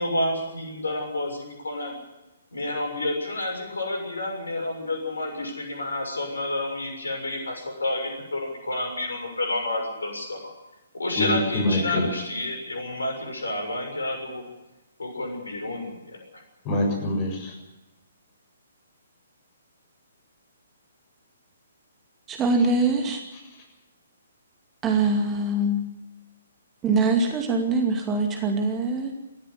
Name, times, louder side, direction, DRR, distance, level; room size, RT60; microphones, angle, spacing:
voice 1, 0.0-1.9 2.5-10.4 10.9-14.4 15.0-16.4, left 1 dB, 70° left, 3 dB, 6.7 m, -29 dB
voice 2, 11.2-12.1 16.6-17.5 23.3-23.6, left 1 dB, 25° left, 2 dB, 7.3 m, -26 dB
voice 3, 22.3-23.2 24.8-25.8 26.8-29.1, right 3 dB, 15° right, 4 dB, 2.4 m, -23 dB
19.5 x 15.5 x 9.8 m, 1.0 s
figure-of-eight pair, 125°, 0 cm